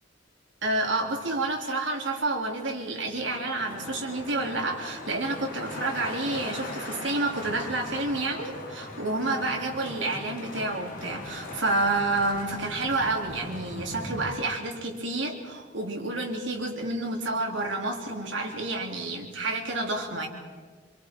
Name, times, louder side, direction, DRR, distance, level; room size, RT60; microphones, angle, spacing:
voice 1, 0.6-20.3, right 2 dB, 80° right, 1 dB, 3.5 m, -29 dB
sound 1, 3.5-14.3, left 2 dB, 50° left, 2.9 m, -40 dB
26.5 x 24.0 x 4.7 m, 1.5 s
head